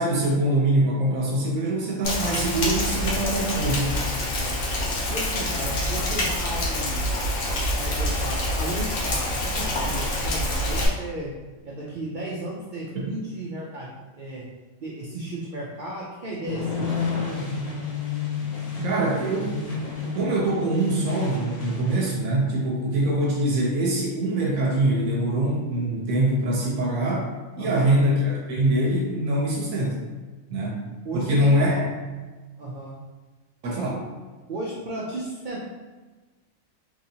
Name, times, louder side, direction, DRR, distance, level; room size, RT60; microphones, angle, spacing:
voice 1, 0.0-4.0 12.9-13.0 18.8-19.6 20.1-27.3 27.6-30.0 30.5-30.8 31.1-31.9 33.6-34.0, right 1 dB, 90° right, -4 dB, 1.1 m, -23 dB
Rain, 2.0-10.9, left 1 dB, 75° left, 1.1 m, -26 dB
voice 2, 5.1-7.1 7.8-11.3 11.6-13.9 14.1-14.5 14.8-16.9 27.6-28.0 31.0-31.5 32.6-33.0 34.5-35.6, right 1 dB, 75° right, -5 dB, 0.4 m, -34 dB
sound 1, 16.5-22.1, left 5 dB, 55° left, 0.4 m, -30 dB
3.1 x 2.8 x 2.7 m, 1.3 s
omnidirectional pair, 1.4 m